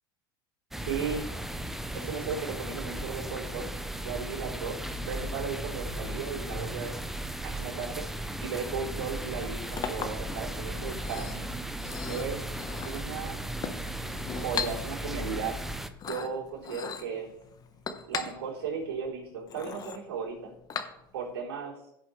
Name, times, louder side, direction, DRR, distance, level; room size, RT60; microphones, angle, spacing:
sound 1, 0.7-15.9, right 1 dB, 5° right, 0.7 m, -36 dB
voice 1, 0.8-1.4 1.9-3.7 4.0-7.0 7.4-11.5 12.1-12.5 12.9-13.4 14.3-15.7 16.0-17.4 18.1-20.5 21.1-21.8, right 6 dB, 90° right, -4 dB, 3.6 m, -36 dB
Chink clink, 9.3-21.4, left 6 dB, 30° left, 1.1 m, -40 dB
16.0 x 6.7 x 3.2 m, 0.80 s
supercardioid pair, 110°, 12 cm